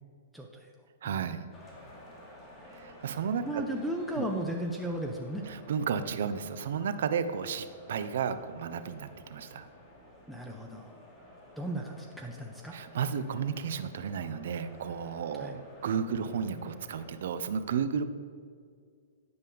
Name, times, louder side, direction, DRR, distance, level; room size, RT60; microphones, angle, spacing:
voice 1, 0.3-0.7 1.0-1.3 3.4-5.4 10.3-10.9 11.6-12.8 15.4-15.6, right 1 dB, ahead, 1 dB, 0.6 m, -35 dB
voice 2, 1.0-1.5 2.7-3.7 4.2-4.3 5.5-9.7 12.7-18.0, right 7 dB, 65° right, 10 dB, 0.5 m, -33 dB
sound 1, 1.5-17.2, left 1 dB, 25° left, 1.7 m, -53 dB
9.6 x 5.2 x 3.5 m, 2.1 s
hypercardioid pair, 120°, 0 cm